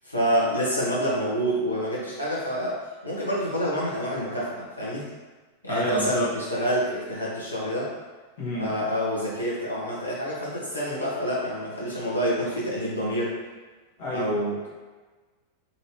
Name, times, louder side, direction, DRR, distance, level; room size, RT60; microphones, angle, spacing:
voice 1, 0.0-2.8 3.0-5.0 5.6-7.9 8.6-13.3 14.1-14.7, equal, 85° left, -7 dB, 1.0 m, -27 dB
voice 2, 5.7-6.3 8.4-8.7 14.0-14.3, left 1 dB, 50° left, -7 dB, 1.2 m, -29 dB
3.0 x 2.8 x 2.7 m, 1.3 s
figure-of-eight pair, 90°, 0 cm